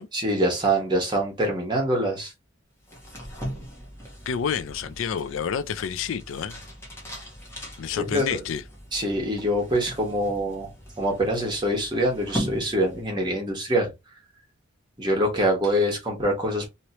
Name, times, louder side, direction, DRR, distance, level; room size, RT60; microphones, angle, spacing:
voice 1, 0.1-2.3 8.0-8.4 8.9-10.7 11.0-13.9 15.0-16.7, right 1 dB, 20° right, 1.3 m, -24 dB
sound 1, 2.8-13.4, equal, 10° left, 1.0 m, -39 dB
voice 2, 4.3-6.6 7.8-8.6, left 7 dB, 70° left, 0.4 m, -29 dB
3.1 x 2.9 x 2.9 m
head